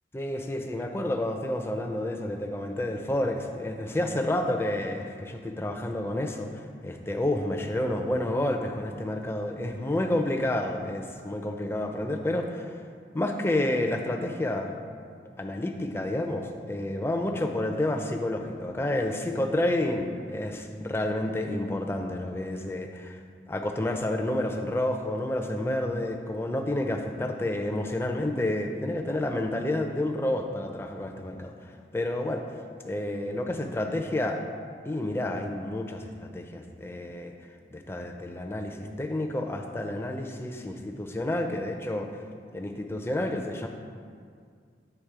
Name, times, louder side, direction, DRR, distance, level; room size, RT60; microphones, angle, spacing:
voice 1, 0.1-12.8 13.1-14.7 15.4-32.6 32.8-34.4 34.9-37.3 37.7-42.2 42.5-43.7, left 1 dB, 15° left, 4 dB, 0.4 m, -30 dB
8.0 x 3.5 x 4.7 m, 2.1 s
head